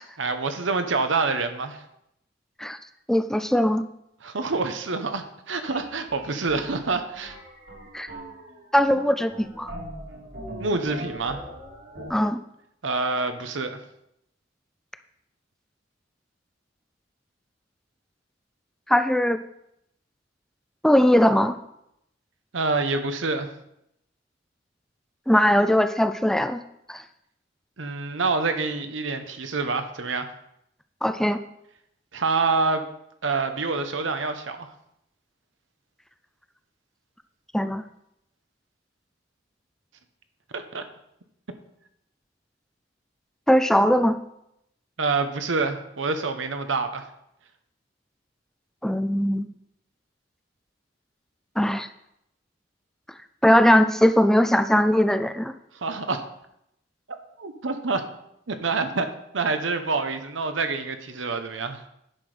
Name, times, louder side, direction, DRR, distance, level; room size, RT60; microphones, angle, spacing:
voice 1, 0.2-1.8 4.2-7.4 10.6-11.4 12.8-13.8 22.5-23.5 27.8-30.3 32.1-32.8 33.2-34.7 40.5-40.8 45.0-47.1 55.7-56.2 57.4-58.0 58.5-59.1 59.3-61.8, right 3 dB, 85° right, 8 dB, 1.0 m, -27 dB
voice 2, 3.1-3.8 7.9-8.1 8.7-9.7 12.1-12.4 18.9-19.4 20.8-21.6 25.3-26.6 26.9-27.0 31.0-31.4 37.5-37.8 43.5-44.2 48.8-49.5 51.6-51.9 53.4-55.5, equal, 5° left, 10 dB, 0.4 m, -20 dB
sound 1, 5.7-12.1, right 1 dB, 70° right, 2.8 m, -41 dB
10.5 x 6.1 x 5.0 m, 0.79 s
head